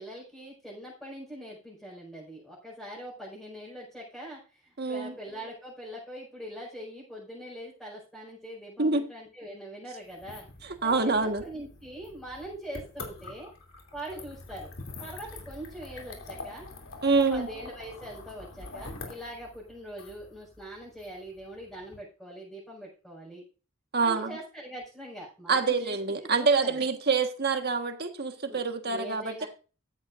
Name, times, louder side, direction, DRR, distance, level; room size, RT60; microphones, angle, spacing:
voice 1, 0.0-10.4 10.8-13.5 13.9-14.7 15.0-16.7 17.0-23.4 24.0-26.8 28.5-28.6 28.9-29.5, right 1 dB, ahead, 5.1 m, -42 dB
voice 2, 4.8-5.1 8.8-9.0 10.6-11.4 17.0-17.5 23.9-24.3 25.5-29.5, right 4 dB, 50° right, 1.5 m, -26 dB
sound 1, 10.1-22.0, left 3 dB, 75° left, 2.9 m, -45 dB
14.5 x 10.5 x 2.6 m
head